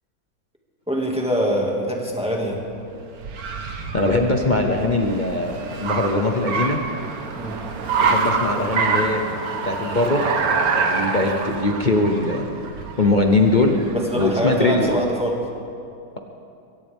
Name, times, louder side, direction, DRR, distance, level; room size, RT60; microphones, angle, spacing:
voice 1, 0.9-2.6 7.4-7.6 13.9-15.4, equal, 5° right, -1 dB, 1.9 m, -24 dB
Car, 2.2-15.1, right 4 dB, 55° right, 1.5 m, -26 dB
voice 2, 3.9-6.8 8.0-9.3 9.6-10.2 10.7-12.5 13.0-13.8 14.1-14.9, left 2 dB, 35° left, 2 dB, 0.7 m, -21 dB
23.0 x 17.5 x 3.6 m, 2.5 s
omnidirectional pair, 2.0 m